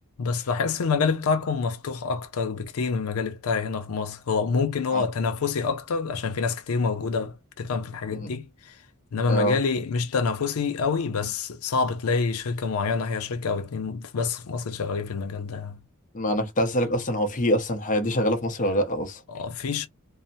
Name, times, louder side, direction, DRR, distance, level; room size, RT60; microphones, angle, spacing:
voice 1, 0.2-8.8 9.1-15.8 19.3-19.9, left 5 dB, 85° left, 0.5 m, -27 dB
voice 2, 16.1-19.2, equal, 35° left, 0.6 m, -25 dB
2.7 x 2.0 x 2.6 m
head